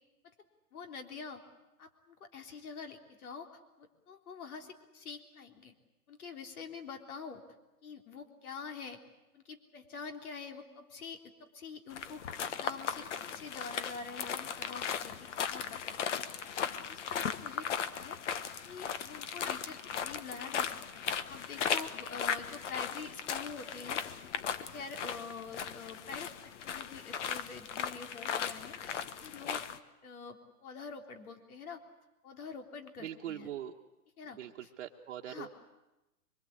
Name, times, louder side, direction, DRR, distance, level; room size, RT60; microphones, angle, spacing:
voice 1, 0.7-1.4 1.8-5.8 6.1-7.4 7.8-9.0 9.3-15.8 16.9-18.2 18.6-26.3 26.6-29.6 30.0-31.8 32.2-33.5 34.2-34.7 35.2-35.5, left 5 dB, 65° left, 4 dB, 3.6 m, -46 dB
sound 1, 11.9-29.8, left 8 dB, 50° left, 1.3 m, -37 dB
voice 2, 33.0-33.7 34.4-35.5, right 11 dB, 45° right, 1 dB, 1.4 m, -42 dB
24.5 x 23.5 x 8.5 m, 1.0 s
hypercardioid pair, 145°, 46 cm